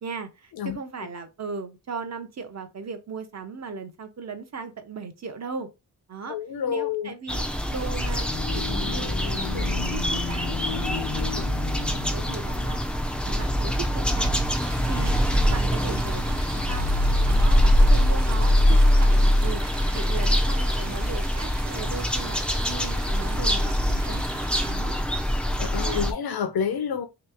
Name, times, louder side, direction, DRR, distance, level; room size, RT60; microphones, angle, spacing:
voice 1, 0.0-5.7 6.1-6.4 6.7-11.5 11.7-12.8 13.2-14.3 14.9-15.1 15.4-16.9 17.3-19.6 19.9-22.4 22.7-24.2 24.6-25.0 25.7-26.0, right 5 dB, 40° right, 0.6 m, -37 dB
voice 2, 6.3-7.1 18.7-18.8 25.5-27.1, left 7 dB, 65° left, 0.7 m, -28 dB
sound 1, 7.3-26.1, equal, 5° left, 0.4 m, -23 dB
sound 2, 7.9-12.6, left 7 dB, 85° left, 0.9 m, -34 dB
sound 3, 14.5-24.7, right 5 dB, 75° right, 0.9 m, -42 dB
3.2 x 2.9 x 3.4 m
wide cardioid pair, 155°, 41 cm